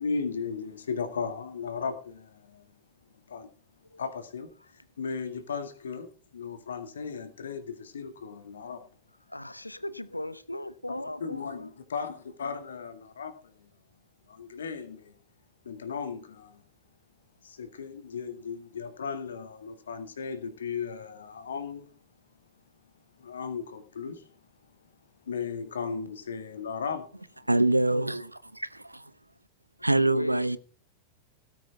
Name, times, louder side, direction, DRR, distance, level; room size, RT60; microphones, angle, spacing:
voice 1, 0.0-2.8 3.3-3.5 4.0-8.9 10.9-13.7 14.3-15.2 15.6-16.6 17.4-21.9 23.2-24.3 25.3-27.1 27.9-28.0, left 5 dB, 65° left, 1.9 m, -36 dB
voice 2, 9.3-11.7 29.8-30.6, left 1 dB, 85° left, 0.9 m, -38 dB
voice 3, 27.5-29.1 29.8-30.6, right 2 dB, 85° right, 0.8 m, -25 dB
17.5 x 10.0 x 3.5 m
figure-of-eight pair, 90°, 0 cm